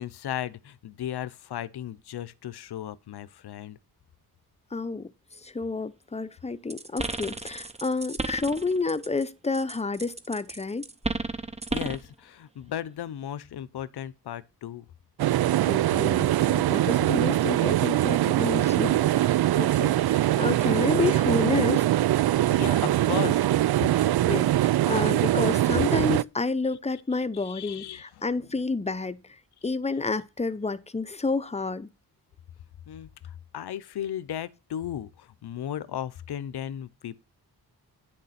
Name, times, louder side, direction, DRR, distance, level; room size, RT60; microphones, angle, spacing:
voice 1, 0.0-3.8 11.7-14.9 22.5-23.5 27.1-28.2 32.9-37.2, left 10 dB, 80° left, 0.8 m, -36 dB
voice 2, 4.7-5.1 5.4-10.8 15.7-21.8 23.9-29.2 29.6-31.9, left 3 dB, 15° left, 0.7 m, -30 dB
sound 1, 6.7-9.2 9.5-12.1, right 3 dB, 15° right, 1.0 m, -33 dB
sound 2, 15.2-26.2, right 14 dB, 75° right, 0.5 m, -23 dB
10.0 x 6.7 x 4.2 m
wide cardioid pair, 120°, 39 cm